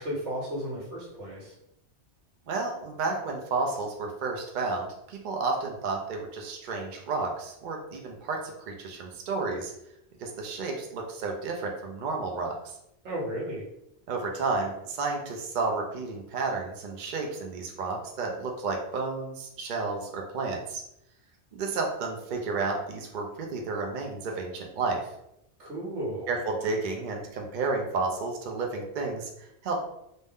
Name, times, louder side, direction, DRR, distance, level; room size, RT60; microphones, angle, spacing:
voice 1, 0.0-1.5 13.0-13.6 25.6-26.3, right 1 dB, 75° right, -4 dB, 1.2 m, -34 dB
voice 2, 2.5-9.7 10.2-12.8 14.1-20.8 21.5-25.0 26.3-29.8, right 3 dB, 60° right, 1 dB, 0.5 m, -31 dB
2.6 x 2.1 x 3.4 m, 0.81 s
omnidirectional pair, 1.2 m